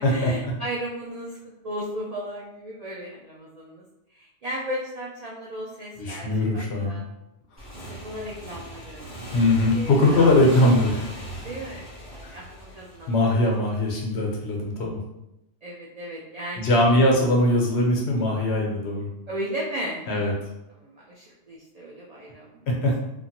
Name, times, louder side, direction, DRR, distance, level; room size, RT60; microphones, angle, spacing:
voice 1, 0.1-1.4 1.6-3.8 4.1-7.0 7.9-9.1 9.7-10.3 11.3-13.5 13.9-14.0 15.6-17.1 19.3-20.4 20.7-22.7, equal, 80° right, -3 dB, 0.3 m, -35 dB
voice 2, 6.0-7.0 9.3-11.0 12.2-12.4 13.1-15.0 16.6-19.1 20.1-20.3 22.7-23.0, left 1 dB, 65° left, -1 dB, 1.0 m, -21 dB
Motorcycle / Engine, 7.6-13.9, right 1 dB, 15° right, 0.9 m, -39 dB
2.9 x 2.5 x 2.8 m, 0.90 s
omnidirectional pair, 1.2 m